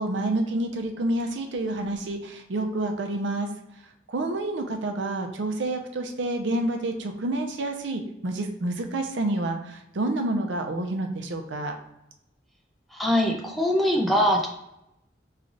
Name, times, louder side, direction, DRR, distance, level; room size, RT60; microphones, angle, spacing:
voice 1, 0.0-3.5 4.1-11.7, right 2 dB, 80° right, 4 dB, 0.5 m, -28 dB
voice 2, 12.9-14.5, equal, ahead, -1 dB, 0.4 m, -22 dB
3.2 x 2.4 x 3.8 m, 0.84 s
head